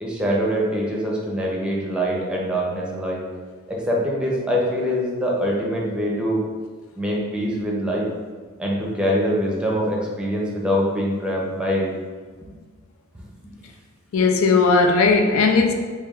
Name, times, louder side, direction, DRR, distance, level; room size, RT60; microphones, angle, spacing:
voice 1, 0.0-3.2 3.7-6.4 7.0-8.1 8.6-11.9 12.4-12.5 13.4-13.5, equal, 5° right, -3 dB, 0.6 m, -24 dB
voice 2, 14.1-15.7, left 4 dB, 80° left, 3 dB, 0.4 m, -17 dB
3.3 x 2.2 x 3.5 m, 1.5 s
head